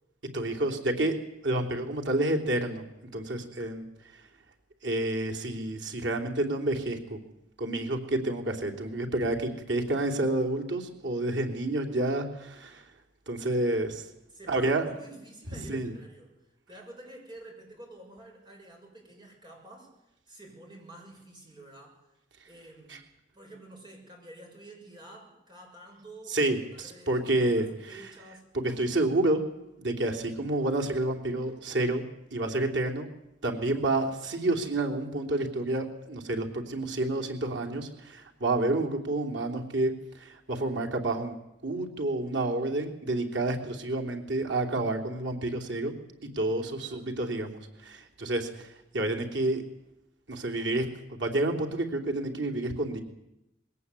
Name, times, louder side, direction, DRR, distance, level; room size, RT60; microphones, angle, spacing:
voice 1, 0.3-1.1 1.4-2.8 3.1-3.8 4.8-7.2 7.6-12.8 13.3-14.1 14.5-14.8 15.7-15.9 22.9-23.0 26.3-27.6 28.6-29.4 29.8-32.0 32.3-33.1 33.4-41.4 41.6-45.9 46.3-48.7 48.9-49.6 50.3-53.0, right 2 dB, 90° right, 2 dB, 3.3 m, -29 dB
voice 2, 14.3-16.4 16.7-19.9 20.3-22.0 22.4-23.0 23.3-28.4 46.8-47.1, right 1 dB, 25° right, 1 dB, 6.6 m, -49 dB
21.5 x 17.5 x 8.4 m, 0.89 s
head